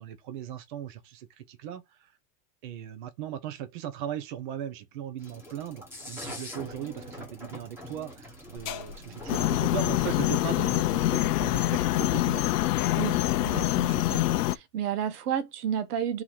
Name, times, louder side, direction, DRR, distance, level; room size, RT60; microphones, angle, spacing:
voice 1, 0.0-2.2 2.6-12.5, right 10 dB, 35° right, 0.5 m, -38 dB
sound 1, 5.2-10.8, left 1 dB, 5° right, 1.1 m, -44 dB
sound 2, 8.6-13.8, left 6 dB, 20° left, 0.5 m, -45 dB
sound 3, 9.3-14.6, left 15 dB, 80° left, 0.6 m, -25 dB
voice 2, 13.0-16.2, right 9 dB, 75° right, 1.1 m, -32 dB
3.9 x 2.8 x 4.6 m
supercardioid pair, 170°, 47 cm